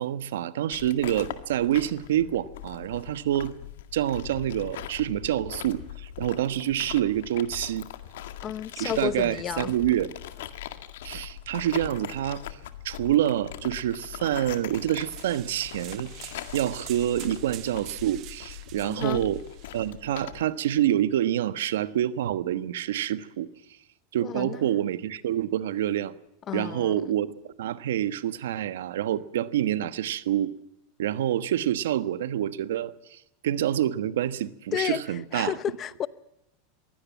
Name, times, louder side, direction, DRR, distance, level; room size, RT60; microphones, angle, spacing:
voice 1, 0.0-3.5 3.9-7.9 8.8-10.1 11.0-12.4 12.8-19.4 19.7-23.5 24.1-26.1 26.5-27.3 27.6-30.5 31.0-35.5, right 11 dB, 85° right, 1.2 m, -27 dB
sound 1, 0.7-20.4, left 12 dB, 80° left, 1.9 m, -41 dB
voice 2, 8.4-9.7 18.8-19.2 24.2-24.6 26.5-27.1 34.7-35.0 35.3-36.1, left 10 dB, 30° left, 0.8 m, -31 dB
sound 2, 14.5-19.9, right 17 dB, 45° right, 0.9 m, -46 dB
22.5 x 16.5 x 7.4 m
supercardioid pair, 145°, 0 cm